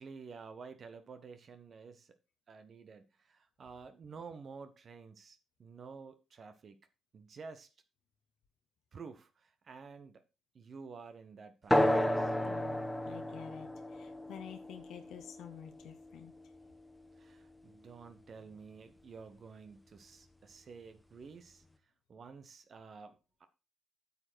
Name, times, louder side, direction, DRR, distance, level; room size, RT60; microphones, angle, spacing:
voice 1, 0.0-2.1 2.5-6.8 7.1-7.7 8.9-10.2 10.5-12.3 17.2-21.6 22.1-23.5, right 5 dB, 50° right, 1.1 m, -51 dB
sound 1, 11.7-16.7, left 1 dB, 10° left, 1.3 m, -33 dB
voice 2, 12.4-16.3, left 9 dB, 65° left, 0.9 m, -50 dB
8.4 x 6.9 x 4.5 m
hypercardioid pair, 45°, 0 cm